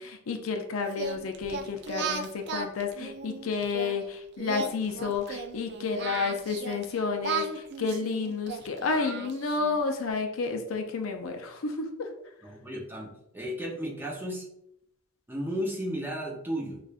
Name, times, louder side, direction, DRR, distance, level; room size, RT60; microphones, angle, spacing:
voice 1, 0.0-12.1, left 4 dB, 70° left, 4 dB, 0.5 m, -31 dB
Singing, 0.9-3.9 4.4-6.9 7.2-9.8, right 5 dB, 55° right, 0.3 m, -36 dB
voice 2, 12.4-14.5 15.3-16.8, equal, 10° right, -2 dB, 0.6 m, -34 dB
4.8 x 2.4 x 2.4 m, 0.76 s
head